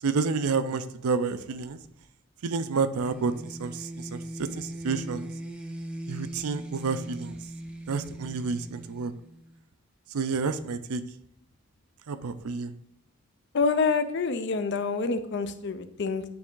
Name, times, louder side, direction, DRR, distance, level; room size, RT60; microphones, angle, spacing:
voice 1, 0.0-1.8 2.4-5.3 6.1-7.4 7.9-9.1 10.1-11.0 12.1-12.7, right 4 dB, 85° right, 12 dB, 0.5 m, -29 dB
sound 1, 3.0-9.6, right 1 dB, 5° right, 0.4 m, -40 dB
voice 2, 13.5-16.2, left 4 dB, 50° left, 11 dB, 0.5 m, -27 dB
8.7 x 3.5 x 3.8 m, 0.72 s
head